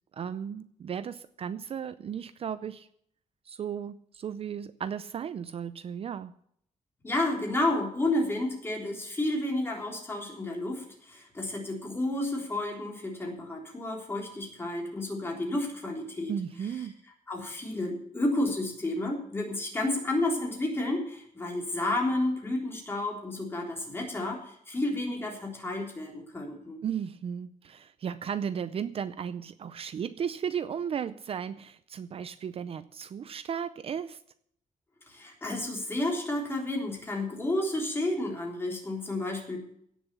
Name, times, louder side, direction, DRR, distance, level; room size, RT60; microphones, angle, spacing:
voice 1, 0.1-2.9 3.5-6.3 16.3-16.9 26.8-34.2, right 8 dB, 45° right, 13 dB, 0.5 m, -35 dB
voice 2, 7.0-16.3 17.3-26.8 35.1-39.6, left 1 dB, 15° left, 0 dB, 3.5 m, -31 dB
17.0 x 7.1 x 7.0 m, 0.68 s
wide cardioid pair, 160°, 14 cm